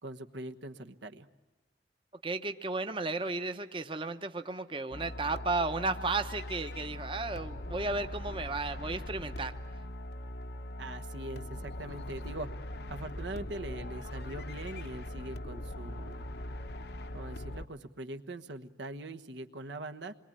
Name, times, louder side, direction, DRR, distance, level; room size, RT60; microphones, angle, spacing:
voice 1, 0.0-1.3 10.8-12.5 12.9-16.3 17.1-20.1, right 2 dB, 85° right, 6 dB, 1.3 m, -42 dB
voice 2, 2.2-9.5, right 3 dB, 30° right, 8 dB, 0.8 m, -34 dB
sound 1, 4.9-17.7, left 1 dB, 65° left, 0.9 m, -41 dB
27.5 x 22.0 x 8.7 m, 1.2 s
head